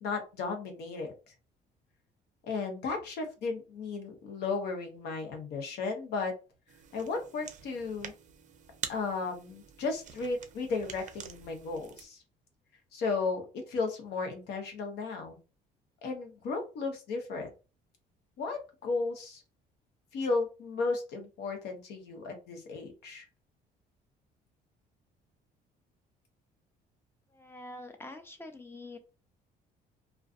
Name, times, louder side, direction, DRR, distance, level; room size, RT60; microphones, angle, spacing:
voice 1, 0.0-1.1 2.4-6.3 6.9-8.1 8.9-12.2 12.9-15.4 16.0-17.5 18.4-19.4 20.1-23.3, left 4 dB, 75° left, 3 dB, 0.9 m, -34 dB
sound 1, 6.7-12.1, right 8 dB, 50° right, 0.5 m, -46 dB
voice 2, 27.3-29.0, left 2 dB, 15° left, 5 dB, 0.6 m, -45 dB
2.4 x 2.3 x 2.4 m, 0.31 s
cardioid pair, 110°, 17 cm